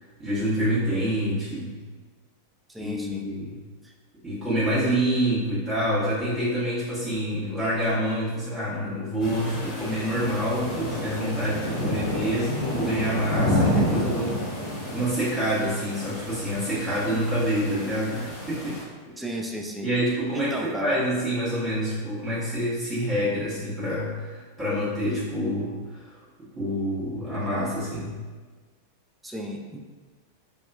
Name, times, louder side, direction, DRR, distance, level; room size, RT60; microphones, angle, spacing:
voice 1, 0.2-1.8 2.8-3.6 4.2-14.4 14.9-18.8 19.8-26.0 26.5-28.2, equal, 25° right, -12 dB, 1.0 m, -27 dB
voice 2, 2.7-3.2 3.8-3.9 19.2-19.9 20.3-21.0 29.2-29.8, right 1 dB, 5° right, 1 dB, 0.3 m, -33 dB
sound 1, 9.2-18.8, left 1 dB, 30° left, 0.8 m, -30 dB
2.7 x 2.2 x 2.4 m, 1.4 s
figure-of-eight pair, 90°, 0 cm